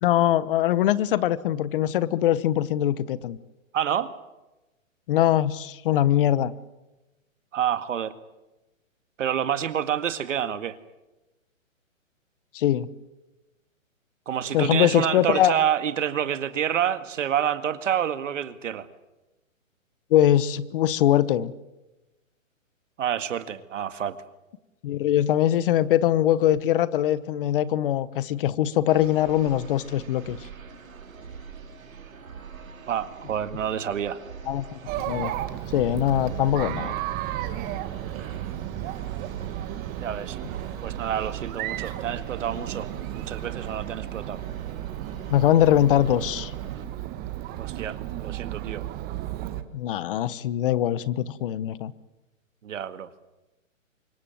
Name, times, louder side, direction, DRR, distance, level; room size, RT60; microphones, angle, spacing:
voice 1, 0.0-3.4 5.1-6.5 12.5-12.9 14.5-15.5 20.1-21.5 24.8-30.4 34.5-34.8 35.1-35.3 35.7-36.9 45.3-46.5 49.7-51.9, left 12 dB, 40° left, 17 dB, 1.2 m, -22 dB
voice 2, 3.7-4.1 7.5-8.1 9.2-10.8 14.3-18.9 23.0-24.2 32.9-34.2 40.0-40.4 40.8-44.4 47.6-48.9 52.6-53.1, right 9 dB, 65° right, 11 dB, 2.0 m, -28 dB
sound 1, 28.9-46.9, right 6 dB, 85° right, 4.6 m, -44 dB
Chatter, 34.9-49.6, right 13 dB, 20° right, 1.6 m, -34 dB
25.5 x 22.0 x 7.8 m, 1.0 s
hypercardioid pair, 145°, 40 cm